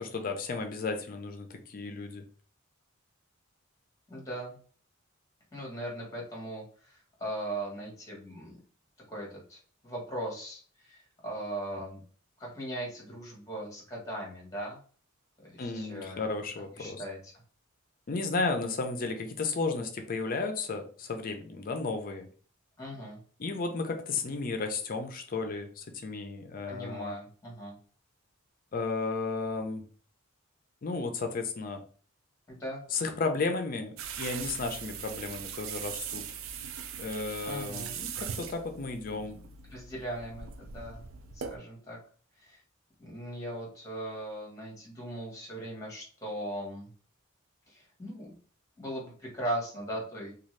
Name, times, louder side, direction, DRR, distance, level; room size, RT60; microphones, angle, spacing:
voice 1, 0.0-2.2 15.6-17.0 18.1-22.3 23.4-27.1 28.7-29.8 30.8-31.8 32.9-36.2 37.0-39.4, left 3 dB, 40° left, 5 dB, 0.4 m, -33 dB
voice 2, 4.1-4.6 5.5-8.6 9.1-12.0 12.4-14.8 15.4-16.3 16.7-17.3 22.8-23.2 26.7-27.8 32.5-32.8 37.4-38.0 39.1-39.2 39.7-42.0 42.4-42.6 43.0-46.9 47.7-48.3 48.8-50.3, right 1 dB, 15° left, -2 dB, 1.2 m, -39 dB
sound 1, 34.0-41.6, right 7 dB, 70° right, 0.3 m, -40 dB
2.6 x 2.4 x 3.1 m, 0.42 s
head